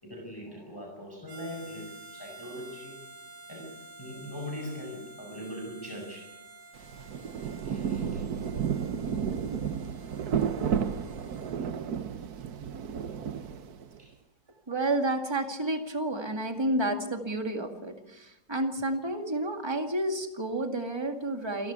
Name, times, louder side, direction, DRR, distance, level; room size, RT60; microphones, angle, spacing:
voice 1, 0.0-6.4 7.4-8.3 14.0-14.2 15.0-15.2 16.9-17.1, equal, 10° left, 0 dB, 5.4 m, -42 dB
Harmonica, 1.3-11.5, right 2 dB, 50° right, 6.4 m, -50 dB
Rain, 6.8-14.0, right 7 dB, 65° right, 1.5 m, -32 dB
voice 2, 14.7-21.7, right 1 dB, 15° right, 5 dB, 2.1 m, -30 dB
28.0 x 12.5 x 8.2 m, 0.91 s
omnidirectional pair, 1.8 m